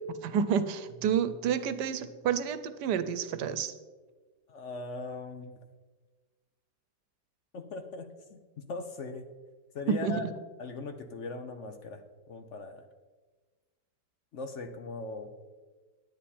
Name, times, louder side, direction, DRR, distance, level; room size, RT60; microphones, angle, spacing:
voice 1, 0.2-3.7 9.9-10.1, right 7 dB, 90° right, 12 dB, 1.3 m, -29 dB
voice 2, 4.5-5.6 7.5-8.4 8.7-9.3 9.7-10.2 10.6-12.0 12.3-12.8 14.3-15.3, left 3 dB, 55° left, 7 dB, 0.9 m, -39 dB
10.5 x 9.3 x 4.3 m, 1.3 s
omnidirectional pair, 1.7 m